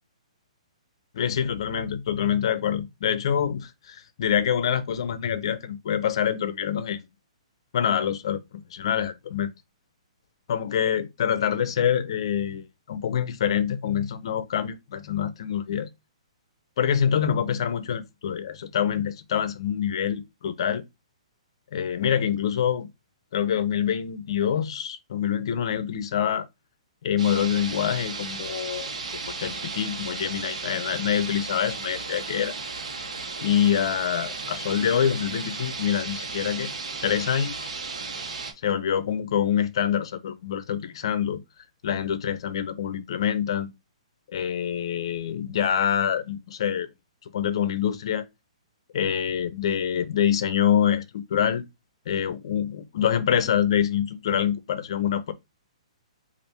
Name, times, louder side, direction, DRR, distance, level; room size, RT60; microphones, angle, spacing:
voice 1, 1.1-7.0 7.7-8.4 8.7-9.5 10.5-15.9 16.8-20.8 21.7-22.9 23.3-26.4 27.0-28.9 29.3-32.5 33.4-36.7 37.0-37.7 38.6-41.4 41.8-43.7 44.3-46.9 47.3-48.2 48.9-51.6 52.1-55.3, left 9 dB, 50° left, 0.5 m, -26 dB
sound 1, 27.2-38.5, right 4 dB, 80° right, 1.1 m, -35 dB
4.3 x 2.5 x 3.3 m
hypercardioid pair, 170°, 4 cm